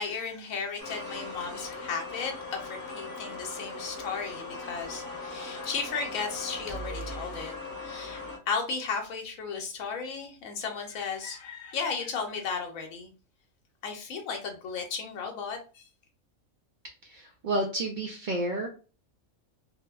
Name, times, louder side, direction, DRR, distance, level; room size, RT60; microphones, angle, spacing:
voice 1, 0.0-7.5 7.8-13.1 13.8-15.9, left 5 dB, 80° left, 1.0 m, -35 dB
sound 1, 0.8-8.4, left 2 dB, 20° left, 0.6 m, -39 dB
voice 2, 17.0-18.7, right 1 dB, 80° right, 0.4 m, -30 dB
3.2 x 2.1 x 2.3 m
omnidirectional pair, 1.4 m